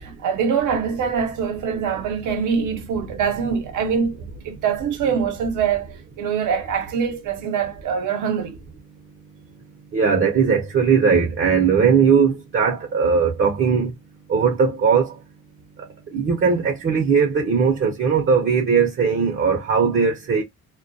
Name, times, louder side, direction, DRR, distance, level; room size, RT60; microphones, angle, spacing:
voice 1, 0.0-8.6, right 6 dB, 80° right, 0.8 m, -24 dB
voice 2, 9.9-13.9 14.3-15.1 16.1-20.4, right 6 dB, 45° right, 0.7 m, -19 dB
2.2 x 2.2 x 2.6 m
cardioid pair, 90°, 30 cm